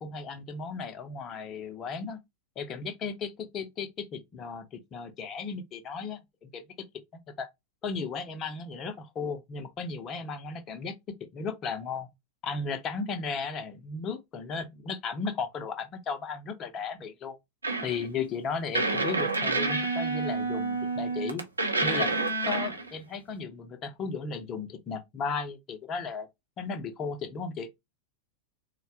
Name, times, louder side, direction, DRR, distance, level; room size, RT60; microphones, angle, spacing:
voice 1, 0.0-2.2 2.6-3.3 3.5-6.6 7.4-7.5 7.8-11.0 11.3-12.1 12.4-17.4 17.8-21.5 21.8-22.1 22.4-26.3 26.6-27.7, left 5 dB, 30° left, 0.6 m, -35 dB
sound 1, 17.6-18.0 18.8-22.9, right 3 dB, 80° right, 0.7 m, -28 dB
3.8 x 2.2 x 2.7 m
figure-of-eight pair, 90°, 0 cm